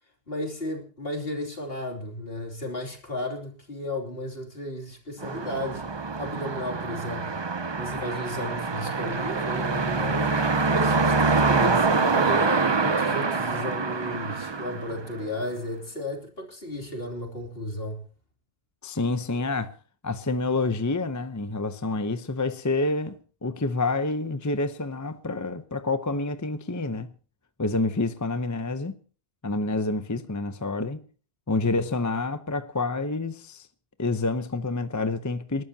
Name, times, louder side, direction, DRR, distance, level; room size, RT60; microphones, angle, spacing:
voice 1, 0.3-5.8 6.2-7.4 7.8-10.4 10.7-18.0, left 1 dB, 60° left, 3.3 m, -34 dB
sound 1, 5.2-15.4, right 4 dB, 30° right, 0.6 m, -25 dB
voice 2, 18.8-19.7 20.0-27.1 27.6-29.0 29.4-31.0 31.5-33.7 34.0-35.6, left 3 dB, 20° left, 0.7 m, -28 dB
28.0 x 12.5 x 2.8 m
omnidirectional pair, 1.1 m